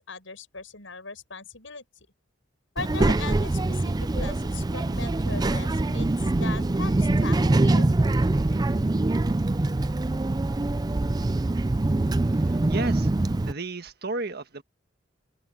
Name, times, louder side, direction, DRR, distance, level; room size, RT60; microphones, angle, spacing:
voice 1, 0.0-1.8 2.8-7.9, left 4 dB, 80° left, 6.8 m, -39 dB
Child speech kid speaking, 2.8-13.5, right 2 dB, 20° right, 0.4 m, -24 dB
voice 2, 12.3-13.1 13.5-14.6, right 3 dB, 55° right, 1.6 m, -34 dB
open air
head